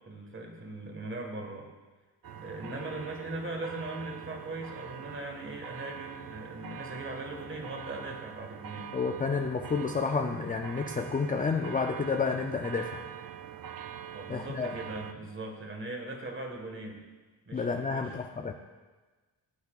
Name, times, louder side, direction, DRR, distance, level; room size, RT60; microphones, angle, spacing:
voice 1, 0.0-1.7 2.4-8.9 14.1-17.0 17.5-18.3, right 2 dB, 25° right, 2 dB, 1.6 m, -40 dB
sound 1, 2.2-15.1, right 9 dB, 50° right, 0.5 m, -44 dB
voice 2, 8.9-13.0 14.3-14.7 17.5-18.5, left 4 dB, 20° left, 4 dB, 0.4 m, -30 dB
15.0 x 9.6 x 2.4 m, 1.3 s
wide cardioid pair, 140°, 44 cm